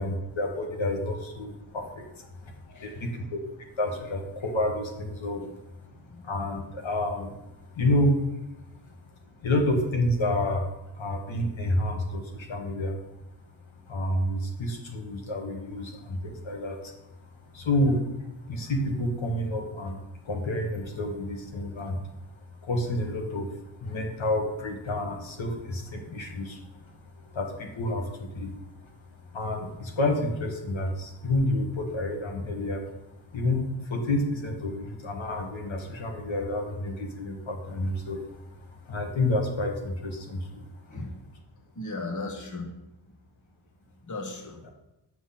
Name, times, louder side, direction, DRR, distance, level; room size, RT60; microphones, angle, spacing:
voice 1, 0.0-5.4 5.8-5.9 6.2-8.3 9.4-10.6 10.9-13.0 13.9-16.9 17.5-22.0 22.6-28.5 28.8-28.9 29.3-32.8 33.3-40.7 44.6-44.7, left 1 dB, 70° left, 2 dB, 1.7 m, -29 dB
voice 2, 2.7-3.0 6.0-6.2 40.9-41.1 41.7-42.7 44.1-44.6, left 2 dB, 40° left, 2 dB, 1.4 m, -36 dB
9.2 x 6.3 x 5.9 m, 0.95 s
wide cardioid pair, 150°, 48 cm